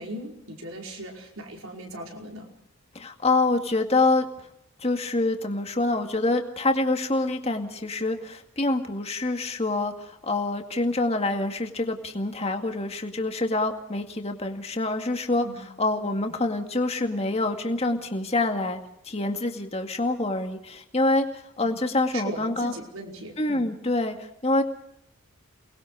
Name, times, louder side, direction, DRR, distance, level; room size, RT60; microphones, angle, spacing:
voice 1, 0.0-2.5 15.4-15.6 21.6-21.7 22.1-23.6, right 1 dB, 80° right, 1 dB, 5.1 m, -38 dB
voice 2, 2.9-4.3 4.8-15.5 15.8-21.3 21.6-22.7 23.4-24.6, left 2 dB, 30° left, 5 dB, 2.1 m, -26 dB
29.5 x 20.5 x 4.9 m, 0.72 s
head